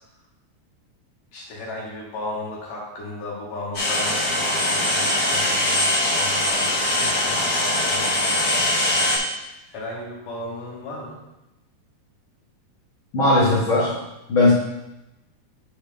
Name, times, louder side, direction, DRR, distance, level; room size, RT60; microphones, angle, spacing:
voice 1, 1.3-9.4 9.7-11.2, left 2 dB, 60° left, -5 dB, 2.8 m, -35 dB
sound 1, 3.7-9.2, left 1 dB, 35° left, 1.6 m, -22 dB
voice 2, 13.1-14.0 14.3-14.5, left 2 dB, 80° left, -8 dB, 1.1 m, -18 dB
12.0 x 4.3 x 3.5 m, 0.94 s
omnidirectional pair, 4.8 m